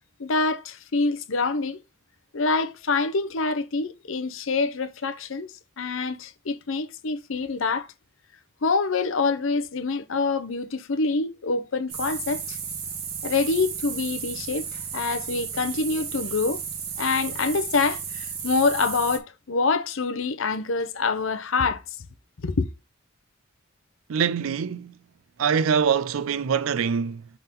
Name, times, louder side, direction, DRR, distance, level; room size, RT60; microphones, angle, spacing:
voice 1, 0.2-1.8 2.3-7.9 8.6-12.6 13.2-16.6 17.0-21.8 22.4-22.7, left 4 dB, 70° left, 0.7 m, -26 dB
sound 1, 11.9-19.2, right 7 dB, 50° right, 1.4 m, -34 dB
voice 2, 24.1-24.9 25.4-27.3, right 7 dB, 85° right, 0.4 m, -24 dB
5.9 x 3.7 x 5.2 m
head